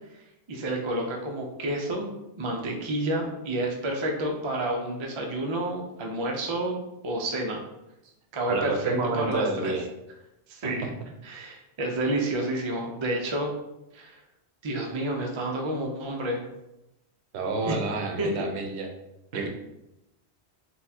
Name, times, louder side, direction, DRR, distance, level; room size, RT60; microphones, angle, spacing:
voice 1, 0.5-2.1 2.4-7.6 8.3-9.7 10.5-10.9 11.2-13.5 13.9-14.2 14.6-16.4 17.6-17.8 18.2-18.5 19.3-19.5, right 1 dB, 45° right, 1 dB, 0.4 m, -30 dB
voice 2, 8.5-9.9 10.6-10.9 17.3-18.9 19.3-19.5, right 3 dB, 75° right, 2 dB, 0.8 m, -29 dB
4.0 x 2.3 x 2.7 m, 0.92 s
omnidirectional pair, 1.1 m